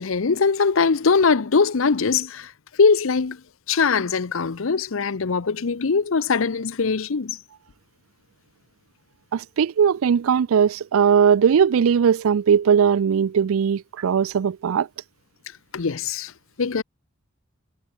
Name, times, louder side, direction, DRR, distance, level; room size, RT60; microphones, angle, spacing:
voice 1, 0.0-2.5 2.8-3.4 3.7-7.4 15.7-16.3 16.6-16.8, left 5 dB, 70° left, 0.7 m, -21 dB
voice 2, 9.3-14.9, right 7 dB, 80° right, 0.4 m, -19 dB
head